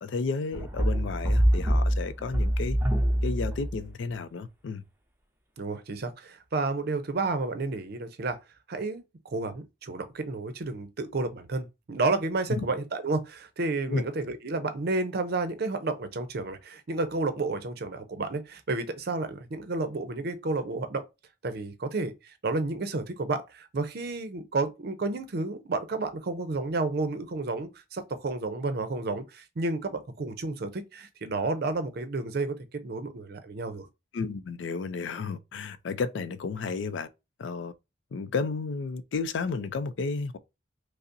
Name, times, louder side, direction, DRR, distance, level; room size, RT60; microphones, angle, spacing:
voice 1, 0.0-2.8 3.2-4.8 12.5-12.7 13.9-14.0 34.1-37.1 37.4-37.7 38.1-40.4, left 4 dB, 85° left, 0.4 m, -32 dB
sound 1, 0.5-3.9, equal, 15° right, 0.6 m, -25 dB
voice 2, 5.6-8.4 8.7-9.0 9.3-21.0 21.4-33.9, right 3 dB, 60° right, 0.5 m, -31 dB
5.2 x 2.0 x 2.5 m
head